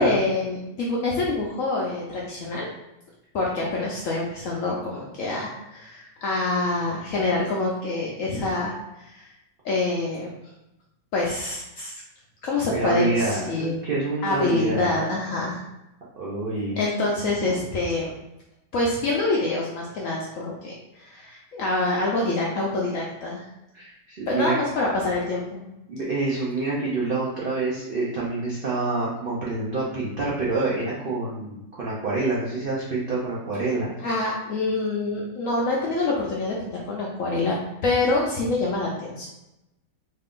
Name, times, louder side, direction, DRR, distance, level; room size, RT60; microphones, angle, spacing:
voice 1, 0.0-2.7 3.3-9.3 9.6-10.3 11.1-12.0 12.4-13.8 14.2-15.6 16.8-18.1 18.7-23.5 24.3-25.6 34.0-37.6 37.8-39.3, left 2 dB, 70° left, -3 dB, 0.7 m, -26 dB
voice 2, 12.7-15.0 16.2-16.8 23.7-24.6 25.9-33.9, right 3 dB, 85° right, -6 dB, 0.4 m, -27 dB
3.2 x 2.5 x 3.5 m, 0.92 s
omnidirectional pair, 1.9 m